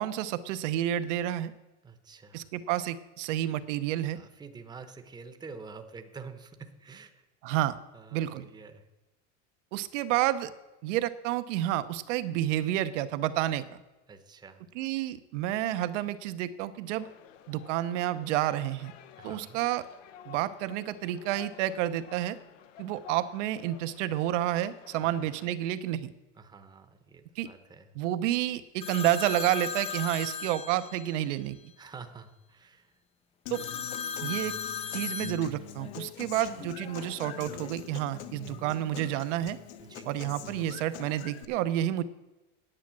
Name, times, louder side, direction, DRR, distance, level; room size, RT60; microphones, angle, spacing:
voice 1, 0.0-1.5 2.3-4.2 7.4-7.8 8.1-8.4 9.7-10.5 10.8-13.8 14.7-17.1 17.5-18.9 19.2-19.9 20.3-22.4 22.8-26.1 27.4-27.5 28.0-31.7 33.5-33.6 34.2-34.6 34.9-39.6 40.1-42.0, right 13 dB, 75° right, 13 dB, 0.9 m, -30 dB
voice 2, 1.8-2.5 4.1-7.2 7.9-8.9 14.1-14.6 19.2-19.6 25.0-25.2 26.3-27.9 31.8-33.0 36.2-36.6 39.8-40.1, right 4 dB, 10° right, 8 dB, 0.9 m, -48 dB
sound 1, 17.0-25.5, left 8 dB, 90° left, 1.1 m, -52 dB
sound 2, 28.8-31.3 33.5-37.8 38.1-39.3 40.1-41.0, left 6 dB, 15° left, 0.5 m, -39 dB
Human voice / Acoustic guitar, 33.5-41.4, left 11 dB, 65° left, 1.2 m, -44 dB
10.0 x 8.5 x 7.5 m, 1.1 s
supercardioid pair, 140°, 37 cm